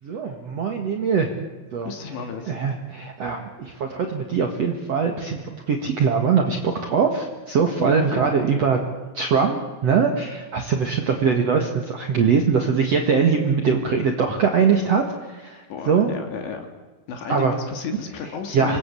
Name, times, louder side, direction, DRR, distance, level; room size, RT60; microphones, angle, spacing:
voice 1, 0.0-1.3 1.7-1.9 2.5-8.8 9.1-16.1 17.3-17.5 18.5-18.8, right 6 dB, 65° right, 3 dB, 1.5 m, -22 dB
voice 2, 1.8-2.6 7.8-9.1 15.7-16.7 17.1-18.8, left 6 dB, 65° left, 5 dB, 4.4 m, -33 dB
26.5 x 19.5 x 8.5 m, 1.3 s
omnidirectional pair, 5.9 m